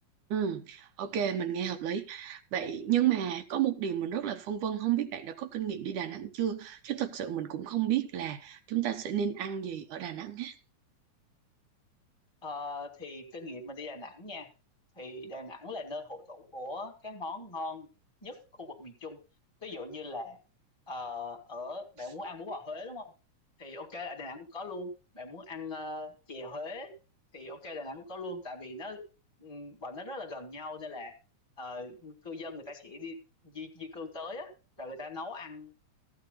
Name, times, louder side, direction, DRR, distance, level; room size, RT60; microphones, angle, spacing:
voice 1, 0.3-10.6, right 10 dB, 80° right, 2.7 m, -32 dB
voice 2, 12.4-14.5 15.0-17.9 18.2-19.2 19.6-20.4 20.9-23.1 23.6-26.9 27.3-29.0 29.4-31.1 31.6-33.2 33.4-34.5 34.8-35.7, left 2 dB, 10° left, 2.1 m, -40 dB
15.5 x 9.4 x 4.1 m
omnidirectional pair, 3.6 m